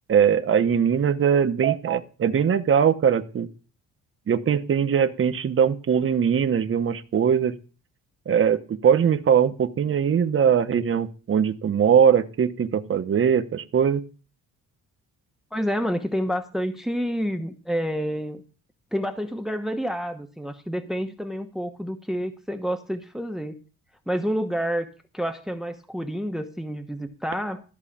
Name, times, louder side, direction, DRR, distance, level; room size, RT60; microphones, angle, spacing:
voice 1, 0.1-3.5 4.3-7.6 8.3-14.0, right 7 dB, 40° right, 9 dB, 1.1 m, -21 dB
voice 2, 15.5-18.4 18.9-23.6 24.1-24.9 25.1-27.6, equal, ahead, 7 dB, 1.1 m, -28 dB
13.5 x 4.8 x 8.6 m, 0.36 s
cardioid pair, 115°, 32 cm